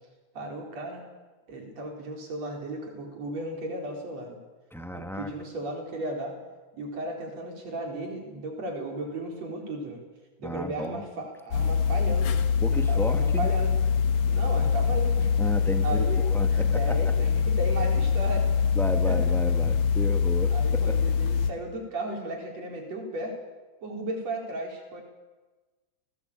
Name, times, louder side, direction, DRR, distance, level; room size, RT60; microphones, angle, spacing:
voice 1, 0.3-1.0 1.5-4.4 4.9-6.4 6.7-10.0 10.4-13.7 14.3-15.4 15.8-16.2 16.5-18.5 19.1-19.3 20.5-23.4 23.8-25.0, right 2 dB, 60° right, 1 dB, 5.6 m, -35 dB
voice 2, 4.7-5.3 10.4-11.0 12.6-13.5 15.4-17.1 18.7-21.0, equal, ahead, 6 dB, 0.7 m, -33 dB
sound 1, 11.5-21.5, left 6 dB, 65° left, 2.6 m, -24 dB
29.5 x 19.5 x 8.7 m, 1.2 s
omnidirectional pair, 3.4 m